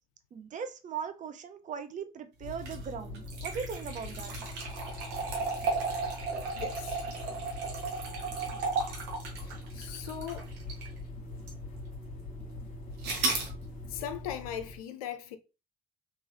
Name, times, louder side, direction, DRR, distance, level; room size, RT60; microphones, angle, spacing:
voice 1, 0.3-4.3, right 6 dB, 45° right, 0.6 m, -39 dB
sound 1, 2.4-14.8, left 2 dB, 50° left, 1.3 m, -42 dB
sound 2, 2.5-11.0 11.5-11.6 13.0-13.5, right 4 dB, 75° right, 0.9 m, -34 dB
voice 2, 6.5-7.0 9.3-10.5 13.9-15.4, left 9 dB, 85° left, 0.4 m, -39 dB
3.1 x 2.6 x 2.5 m
hypercardioid pair, 55°, 18 cm